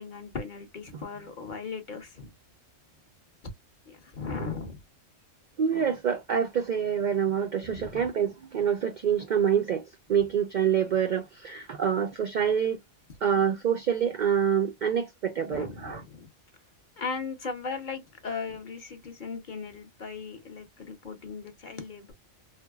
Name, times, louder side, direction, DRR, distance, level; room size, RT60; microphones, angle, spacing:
voice 1, 0.0-2.3 3.9-4.8 7.6-8.1 15.5-16.3 17.0-22.1, left 5 dB, 45° left, 0.8 m, -37 dB
voice 2, 5.6-12.8 13.2-16.0, right 8 dB, 85° right, 0.4 m, -26 dB
3.3 x 2.1 x 2.2 m
omnidirectional pair, 1.3 m